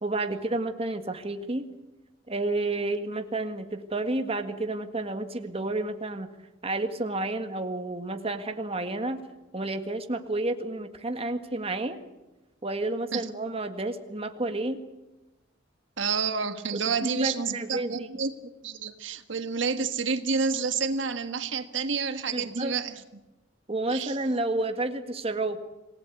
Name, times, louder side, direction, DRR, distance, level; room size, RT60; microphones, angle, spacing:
voice 1, 0.0-1.7 2.3-6.3 6.6-9.2 9.5-12.0 12.6-14.8 16.7-18.1 22.3-22.8 23.7-25.6, right 2 dB, 30° right, 7 dB, 1.8 m, -30 dB
voice 2, 16.0-18.3 18.6-23.0 23.9-24.2, right 5 dB, 80° right, 9 dB, 1.5 m, -29 dB
27.0 x 18.5 x 8.3 m, 1.0 s
head